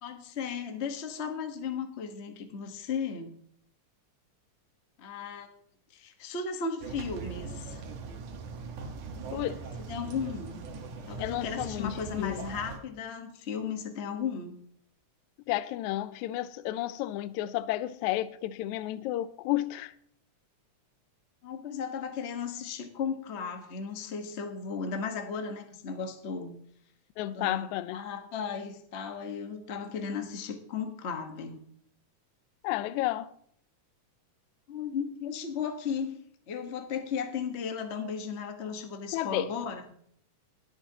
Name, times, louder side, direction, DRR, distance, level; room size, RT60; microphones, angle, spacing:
voice 1, 0.0-3.3 5.0-5.5 5.9-7.8 9.9-10.6 11.1-14.5 21.4-26.5 27.3-31.6 34.7-36.2 36.5-39.8, left 6 dB, 60° left, 0.6 m, -35 dB
sound 1, 6.8-12.8, right 4 dB, 90° right, 2.8 m, -40 dB
voice 2, 9.3-9.7 11.2-12.5 15.5-19.9 27.2-28.0 32.6-33.3 39.1-39.5, left 14 dB, 85° left, 1.9 m, -32 dB
20.5 x 8.4 x 2.9 m
omnidirectional pair, 3.4 m